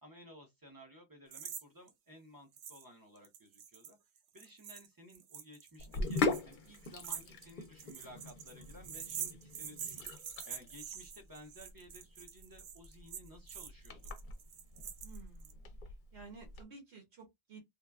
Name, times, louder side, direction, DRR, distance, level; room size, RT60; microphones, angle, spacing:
voice 1, 0.0-4.0 4.3-10.0 10.5-14.1, equal, 25° right, 0.6 m, -56 dB
sound 1, 1.3-1.6 1.9-2.0 2.6-2.9 3.2-15.5, right 8 dB, 90° right, 0.9 m, -46 dB
Sink (filling or washing), 5.8-16.6, left 3 dB, 55° left, 0.6 m, -41 dB
voice 2, 15.0-15.6 16.1-17.6, right 4 dB, 70° right, 1.1 m, -53 dB
2.9 x 2.2 x 2.2 m
omnidirectional pair, 1.1 m